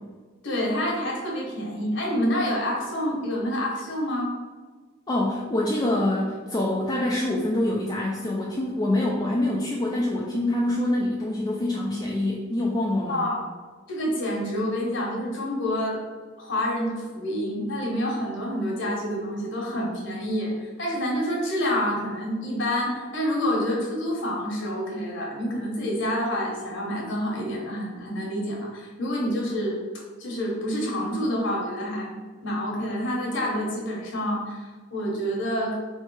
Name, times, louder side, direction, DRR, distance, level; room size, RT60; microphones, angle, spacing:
voice 1, 0.4-4.3 13.1-13.4 13.9-16.0 16.4-29.8 30.2-32.2 32.4-35.8, equal, 60° left, -2 dB, 1.3 m, -28 dB
voice 2, 5.1-13.3, left 1 dB, 20° left, -4 dB, 0.4 m, -25 dB
3.3 x 3.2 x 4.6 m, 1.4 s
head